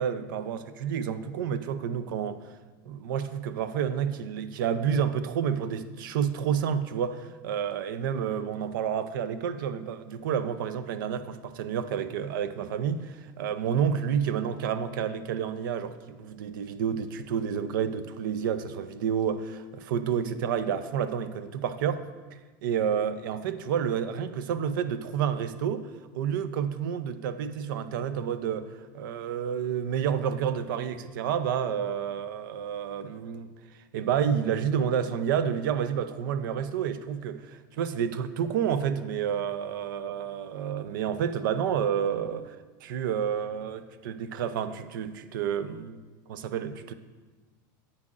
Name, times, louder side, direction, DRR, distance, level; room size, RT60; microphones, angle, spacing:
voice 1, 0.0-2.4 2.9-22.1 22.6-25.9 26.1-33.5 33.9-42.6 42.8-46.0 46.3-46.9, right 8 dB, 85° right, 12 dB, 0.5 m, -29 dB
9.5 x 8.7 x 2.5 m, 1.3 s
supercardioid pair, 145°, 11 cm